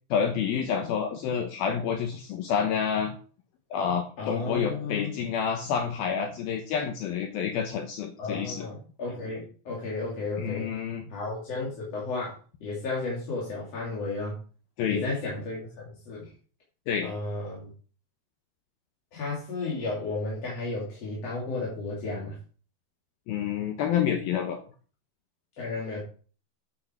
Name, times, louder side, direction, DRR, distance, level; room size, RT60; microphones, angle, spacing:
voice 1, 0.1-3.2 3.7-8.7 10.4-11.0 14.8-15.1 16.9-17.1 23.3-24.6, left 7 dB, 85° left, 4 dB, 2.1 m, -28 dB
voice 2, 4.2-5.1 8.2-10.7 11.1-14.4 14.8-16.3 17.0-17.7 19.1-22.4 25.6-26.0, left 3 dB, 40° left, -5 dB, 3.0 m, -33 dB
9.5 x 8.1 x 4.4 m, 0.40 s
omnidirectional pair, 5.8 m